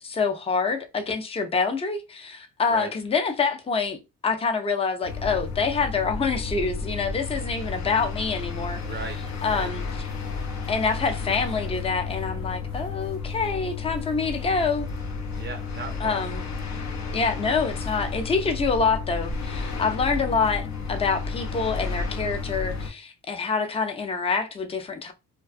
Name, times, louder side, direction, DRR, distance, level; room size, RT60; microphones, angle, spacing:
voice 1, 0.0-8.8 9.4-9.8 10.7-14.9 16.0-16.4 17.1-25.1, left 4 dB, 20° left, 0.4 m, -26 dB
sound 1, 5.0-22.9, left 4 dB, 65° left, 0.7 m, -32 dB
voice 2, 8.8-9.7 15.4-16.3, right 4 dB, 35° right, 0.5 m, -37 dB
2.4 x 2.3 x 2.4 m
cardioid pair, 90°, 30 cm